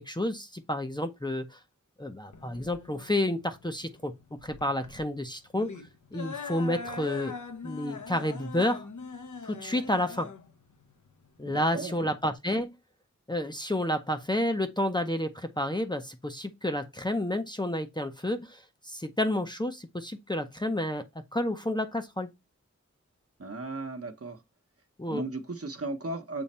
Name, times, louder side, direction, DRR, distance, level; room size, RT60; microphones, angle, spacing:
voice 1, 0.0-1.6 2.0-5.7 6.1-7.3 7.6-8.9 9.4-10.3 11.4-12.8 13.3-21.1 21.3-22.3 25.0-25.2, left 1 dB, 15° left, 0.7 m, -30 dB
sound 1, 2.3-12.4, left 4 dB, 80° left, 1.0 m, -42 dB
voice 2, 11.4-12.1 23.4-24.4 25.1-26.4, right 3 dB, 50° right, 1.1 m, -36 dB
7.0 x 3.2 x 4.2 m
wide cardioid pair, 70°, 30 cm